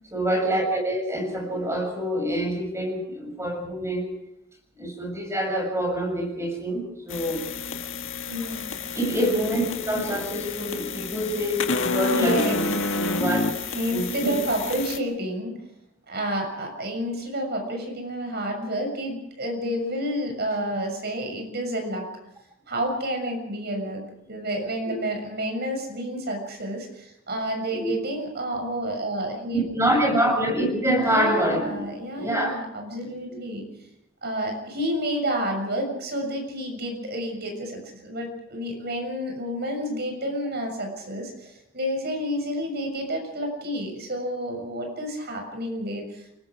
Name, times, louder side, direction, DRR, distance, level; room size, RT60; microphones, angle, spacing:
voice 1, 0.1-4.1 4.8-7.6 8.9-13.4 13.9-14.4 24.8-25.0 27.8-27.9 29.5-31.8 32.2-32.5, right 1 dB, 15° right, 1 dB, 7.3 m, -26 dB
sound 1, 7.1-15.0, left 3 dB, 65° left, 1.9 m, -29 dB
voice 2, 8.3-8.6 12.1-13.0 13.7-15.6 16.1-22.1 22.7-29.7 31.0-33.6 34.2-46.4, equal, 55° right, 3 dB, 6.7 m, -30 dB
28.5 x 20.0 x 5.0 m, 0.81 s
head